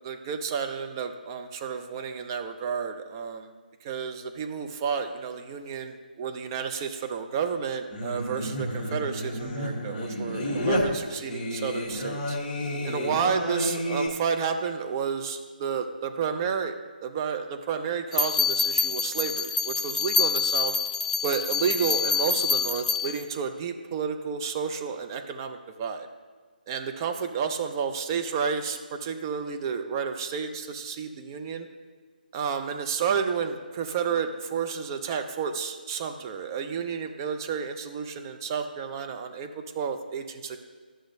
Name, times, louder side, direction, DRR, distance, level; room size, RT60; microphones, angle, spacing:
voice 1, 0.0-3.5 3.8-12.4 12.8-20.7 21.2-26.1 26.7-31.7 32.3-40.6, right 6 dB, 25° right, 6 dB, 0.4 m, -31 dB
Singing, 7.9-14.1, left 1 dB, 20° left, 1.2 m, -30 dB
sound 1, 18.1-23.2, left 5 dB, 45° left, 0.5 m, -26 dB
11.5 x 6.2 x 2.6 m, 1.5 s
figure-of-eight pair, 150°, 5 cm